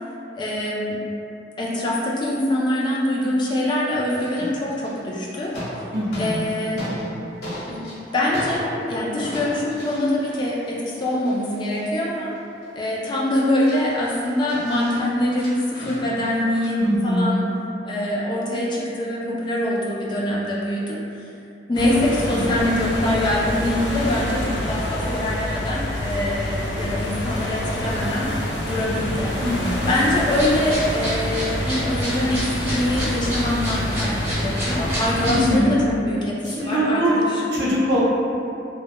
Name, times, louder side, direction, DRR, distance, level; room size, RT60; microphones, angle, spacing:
voice 1, 0.3-1.0 1.6-5.5 6.2-6.8 7.5-12.3 12.7-17.5 17.8-21.0 21.7-28.3 28.6-29.3 29.9-35.8 36.1-37.4, left 1 dB, 25° left, -5 dB, 0.3 m, -24 dB
sound 1, 4.2-5.1 5.4-7.1 7.4-8.9 9.2-12.7 13.2-13.3 13.5-16.7, equal, 60° left, 0.9 m, -36 dB
voice 2, 5.9-6.5 6.9-7.2 16.8-17.4 22.3-22.5 29.4-30.0 35.2-35.8 36.4-37.2 37.5-38.0, equal, 65° right, -6 dB, 0.5 m, -23 dB
sound 2, 21.7-35.6, left 1 dB, 90° left, 0.5 m, -27 dB
sound 3, 30.3-35.4, equal, 15° right, 0.7 m, -30 dB
2.1 x 2.1 x 2.8 m, 2.6 s
head